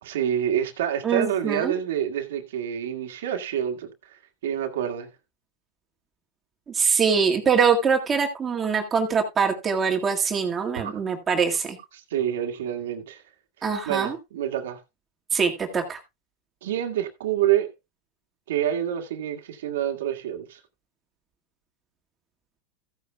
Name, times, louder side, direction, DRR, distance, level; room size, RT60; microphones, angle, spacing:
voice 1, 0.0-5.1 10.8-11.0 11.9-13.2 13.9-14.8 16.6-17.7 18.5-20.6, right 10 dB, 80° right, 1.8 m, -27 dB
voice 2, 1.0-1.8 6.7-11.8 13.6-14.2 15.3-16.0, right 6 dB, 25° right, 1.9 m, -23 dB
15.0 x 9.4 x 2.3 m
hypercardioid pair, 110°, 0 cm